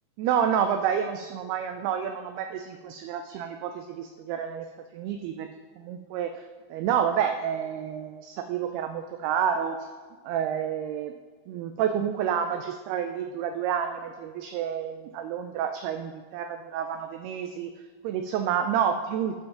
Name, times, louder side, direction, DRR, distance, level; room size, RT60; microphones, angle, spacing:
voice 1, 0.2-4.7 4.9-5.5 5.8-6.3 6.7-9.8 10.3-11.1 11.5-17.7 18.0-19.3, right 8 dB, 85° right, 7 dB, 2.2 m, -29 dB
11.5 x 5.4 x 5.7 m, 1.5 s
omnidirectional pair, 5.1 m